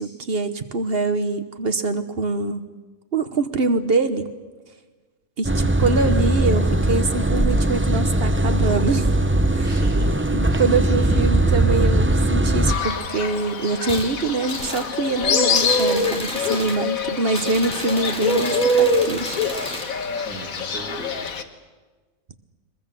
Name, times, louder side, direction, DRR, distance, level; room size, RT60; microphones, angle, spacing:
voice 1, 0.0-2.7 3.1-4.3 5.4-9.1 9.6-9.8 10.3-19.7, right 3 dB, 45° right, 9 dB, 1.3 m, -24 dB
sound 1, 5.4-12.8, right 1 dB, 10° right, 0.6 m, -20 dB
voice 2, 9.6-10.7 10.9-11.2 20.1-21.3, right 2 dB, 85° right, 0 dB, 3.7 m, -38 dB
Fowl, 12.7-21.4, left 2 dB, 90° left, 1.7 m, -24 dB
sound 2, 13.8-14.1 14.5-14.9 15.5-16.8 17.3-19.9, equal, 5° left, 3.2 m, -33 dB
22.5 x 21.5 x 7.5 m, 1.3 s
omnidirectional pair, 1.4 m